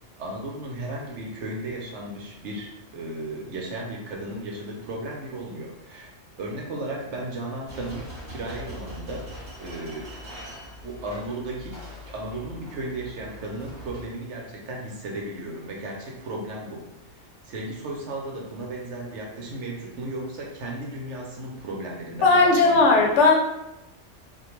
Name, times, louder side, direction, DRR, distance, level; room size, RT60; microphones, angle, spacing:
voice 1, 0.2-9.3 9.6-10.1 10.8-11.8 12.1-16.9 17.5-22.9, right 1 dB, 75° right, -1 dB, 1.0 m, -35 dB
sound 1, 7.7-14.1, equal, 45° right, 0.9 m, -42 dB
voice 2, 22.2-23.3, left 3 dB, 70° left, 1 dB, 0.9 m, -17 dB
2.4 x 2.2 x 3.0 m, 0.89 s
omnidirectional pair, 1.3 m